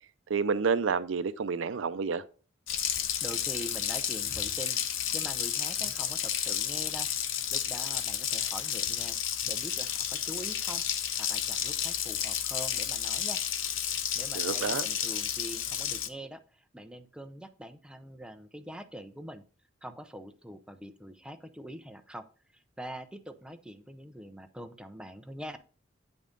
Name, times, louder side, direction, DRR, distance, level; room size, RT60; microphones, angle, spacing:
voice 1, 0.3-2.2 14.4-14.8, right 5 dB, 75° right, 0.5 m, -29 dB
Water tap faucet, 2.7-16.1, left 9 dB, 75° left, 0.6 m, -31 dB
voice 2, 3.2-4.8 5.1-7.1 7.5-10.8 11.2-13.4 14.1-19.4 19.8-22.2 22.5-25.6, equal, 5° right, 0.6 m, -44 dB
8.4 x 5.4 x 3.8 m
head